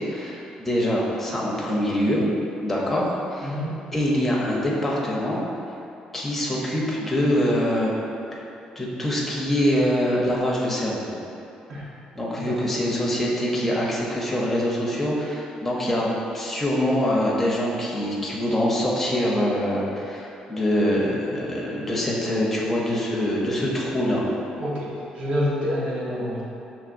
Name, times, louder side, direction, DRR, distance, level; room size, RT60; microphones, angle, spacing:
voice 1, 0.0-2.3 2.6-3.5 3.9-5.4 6.1-7.9 8.3-8.4 8.8-11.1 12.1-24.2, equal, 10° left, -5 dB, 0.6 m, -24 dB
voice 2, 3.4-3.8 11.7-11.9 12.4-12.6 24.6-26.4, equal, 50° right, -6 dB, 0.9 m, -28 dB
5.8 x 3.2 x 2.5 m, 2.8 s
cardioid pair, 175°, 2 cm